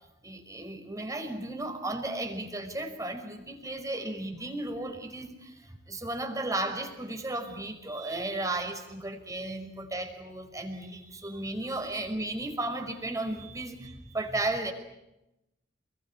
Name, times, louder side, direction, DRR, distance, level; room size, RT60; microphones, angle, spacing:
voice 1, 0.2-14.7, right 2 dB, 20° right, 5 dB, 5.5 m, -34 dB
30.0 x 22.0 x 8.7 m, 0.92 s
head